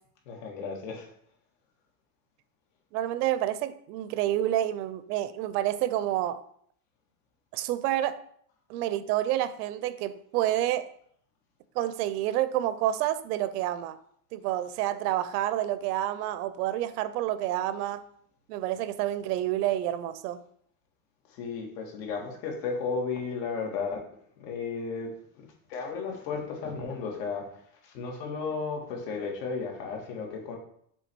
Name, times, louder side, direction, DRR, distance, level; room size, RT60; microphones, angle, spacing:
voice 1, 0.3-1.1 21.3-24.1 24.4-27.5 27.8-30.6, left 5 dB, 80° left, 1 dB, 2.0 m, -34 dB
voice 2, 2.9-6.4 7.5-8.2 8.7-10.9 11.8-14.0 14.3-18.0 18.5-20.4, right 13 dB, 70° right, 14 dB, 0.6 m, -29 dB
7.2 x 3.3 x 4.5 m, 0.66 s
cardioid pair, 175°, 48 cm